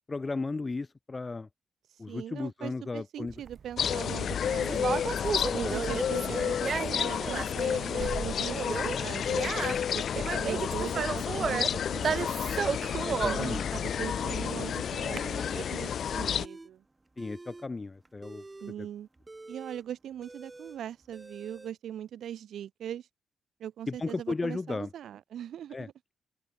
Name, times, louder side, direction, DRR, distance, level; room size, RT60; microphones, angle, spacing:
voice 1, 0.1-1.5 2.0-3.3 4.7-4.8 5.5-6.0 13.0-13.7 17.2-18.4 18.8-18.9 23.9-24.9 25.7-26.1, left 3 dB, 25° left, 1.1 m, -35 dB
voice 2, 2.1-5.0 5.5-12.4 13.2-16.8 18.6-19.1 19.5-23.1 23.6-25.9, right 10 dB, 75° right, 4.2 m, -40 dB
Conversation, 3.3-15.2, right 6 dB, 50° right, 0.8 m, -34 dB
sound 1, 3.8-16.5, left 8 dB, 60° left, 2.5 m, -31 dB
sound 2, 14.2-14.7 15.1-15.6 15.9-16.7 17.1-21.7, right 2 dB, 20° right, 2.5 m, -47 dB
open air
cardioid pair, 105°, 0 cm